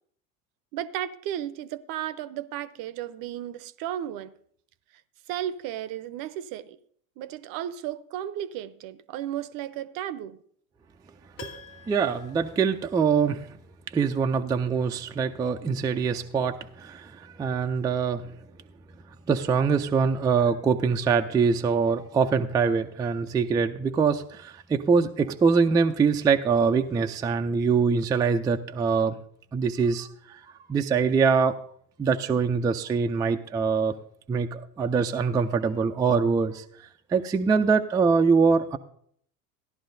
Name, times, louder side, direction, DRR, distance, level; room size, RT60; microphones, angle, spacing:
voice 1, 0.7-4.3 5.3-6.8 7.2-10.4, right 11 dB, 50° right, 0.6 m, -34 dB
Piano, 11.4-13.5 13.7-13.8, left 3 dB, 70° left, 1.5 m, -47 dB
voice 2, 11.9-13.4 13.9-18.2 19.3-29.1 29.5-30.1 30.7-31.6 32.0-34.0 34.3-36.6 37.1-38.8, right 5 dB, 10° right, 0.3 m, -23 dB
14.0 x 11.0 x 2.6 m
hypercardioid pair, 75°, 43 cm